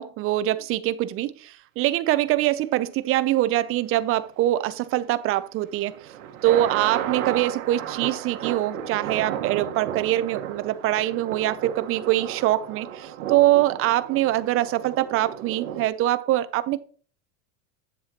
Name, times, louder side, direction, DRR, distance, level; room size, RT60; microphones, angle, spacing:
voice 1, 0.0-5.9 6.4-16.8, right 15 dB, 35° right, 0.6 m, -23 dB
sound 1, 5.7-15.9, right 9 dB, 80° right, 1.5 m, -34 dB
11.0 x 7.5 x 3.0 m
supercardioid pair, 135°, 40 cm